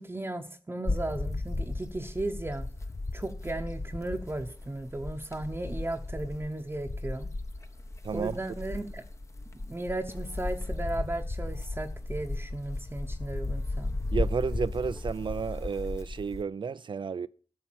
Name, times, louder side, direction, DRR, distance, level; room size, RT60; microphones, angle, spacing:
voice 1, 0.0-2.7 3.1-7.3 8.1-9.0 9.7-13.9, right 2 dB, 25° right, 1.0 m, -35 dB
sound 1, 0.9-16.4, left 2 dB, 30° left, 1.0 m, -35 dB
voice 2, 8.0-8.4 14.1-17.3, right 5 dB, 60° right, 0.5 m, -32 dB
13.0 x 5.6 x 7.6 m
wide cardioid pair, 75°, 9 cm